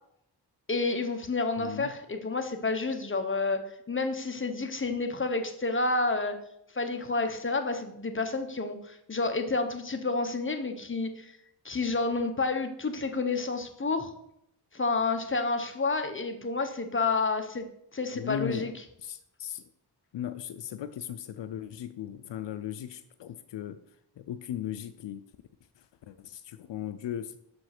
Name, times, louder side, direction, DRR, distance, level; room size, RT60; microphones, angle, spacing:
voice 1, 0.7-6.4 6.7-11.3 11.6-14.1 14.7-17.7 17.9-18.7, left 3 dB, 30° left, 7 dB, 1.0 m, -30 dB
voice 2, 1.6-1.9 18.1-18.7 19.0-19.7 20.1-23.8 24.2-25.2 26.0-27.4, left 10 dB, 80° left, 12 dB, 0.5 m, -37 dB
6.5 x 5.2 x 5.9 m, 0.75 s
cardioid pair, 70°, 43 cm